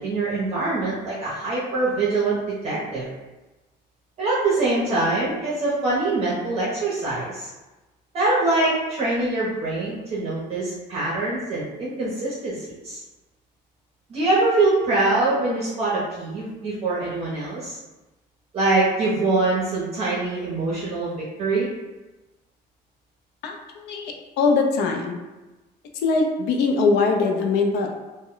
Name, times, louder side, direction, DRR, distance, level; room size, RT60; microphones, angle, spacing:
voice 1, 0.0-3.1 4.2-7.5 8.1-13.0 14.1-17.8 18.5-21.7, right 2 dB, 35° right, -7 dB, 0.6 m, -24 dB
voice 2, 23.4-25.2 26.0-27.9, left 4 dB, 70° left, 3 dB, 0.5 m, -22 dB
2.1 x 2.1 x 3.7 m, 1.1 s
cardioid pair, 165°, 18 cm